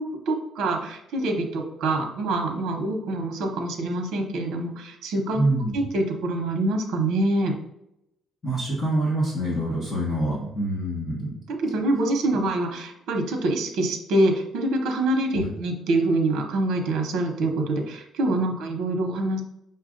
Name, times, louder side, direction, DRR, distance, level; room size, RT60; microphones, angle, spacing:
voice 1, 0.0-5.4 5.7-7.5 11.6-19.4, right 2 dB, 70° right, 3 dB, 0.9 m, -25 dB
voice 2, 5.3-5.7 8.4-11.3, right 1 dB, 20° left, -8 dB, 1.1 m, -25 dB
5.5 x 2.4 x 3.8 m, 0.83 s
cardioid pair, 175°, 0 cm